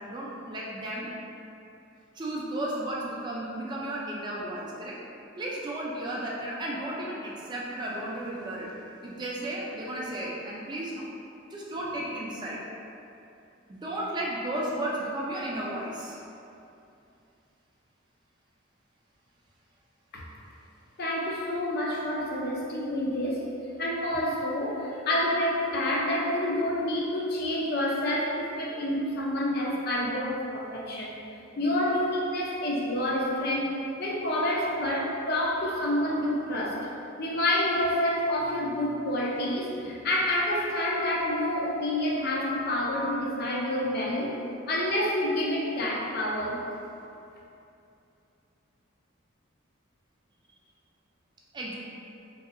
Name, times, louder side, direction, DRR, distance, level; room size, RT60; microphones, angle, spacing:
voice 1, 0.1-1.1 2.2-5.0 5.4-8.7 9.0-11.1 11.5-12.7 13.7-16.2 36.0-36.7 39.8-40.0 51.5-51.7, right 1 dB, 20° right, -4 dB, 0.3 m, -34 dB
voice 2, 21.0-23.5 23.8-31.2 31.6-36.9 37.2-44.4 44.7-46.6, left 1 dB, 50° left, -3 dB, 0.4 m, -28 dB
3.1 x 2.7 x 2.5 m, 2.7 s
head